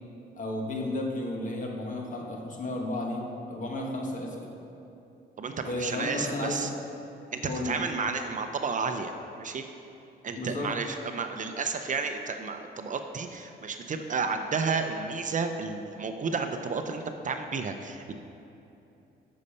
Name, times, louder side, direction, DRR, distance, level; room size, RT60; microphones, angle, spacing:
voice 1, 0.4-3.2 3.5-4.4 5.6-6.7 7.5-7.7 10.4-10.7, left 1 dB, 40° left, 0 dB, 1.5 m, -33 dB
voice 2, 5.4-6.7 7.3-9.1 9.4-9.6 10.2-18.1, right 4 dB, 40° right, 6 dB, 0.6 m, -32 dB
8.3 x 5.5 x 5.5 m, 2.8 s
cardioid pair, 90°, 20 cm